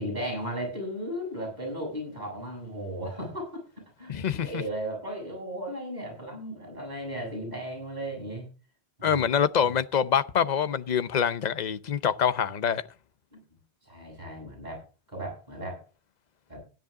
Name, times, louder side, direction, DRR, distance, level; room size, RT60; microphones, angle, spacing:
voice 1, 0.0-3.6 4.0-8.5 9.0-9.2 9.6-9.7 13.3-15.8 16.5-16.6, right 1 dB, 45° right, 7.6 m, -36 dB
voice 2, 4.1-4.6 9.0-12.8, left 8 dB, 45° left, 0.8 m, -25 dB
16.0 x 10.5 x 3.7 m
omnidirectional pair, 1.1 m